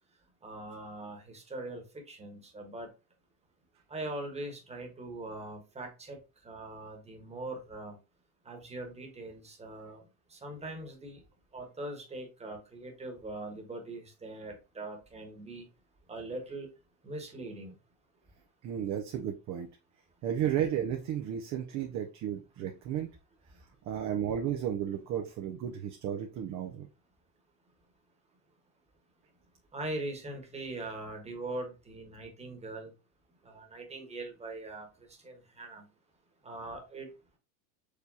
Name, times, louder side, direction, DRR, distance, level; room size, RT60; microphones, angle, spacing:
voice 1, 0.4-2.9 3.9-8.0 8.4-10.0 10.3-11.2 11.5-15.6 16.1-16.7 17.0-17.7 29.7-32.9 33.4-35.9 36.4-37.1, right 2 dB, 15° right, 3 dB, 1.3 m, -41 dB
voice 2, 18.6-19.7 20.2-23.1 23.8-26.9, right 9 dB, 40° right, 4 dB, 0.6 m, -33 dB
4.8 x 3.3 x 2.7 m, 0.29 s
supercardioid pair, 115°, 46 cm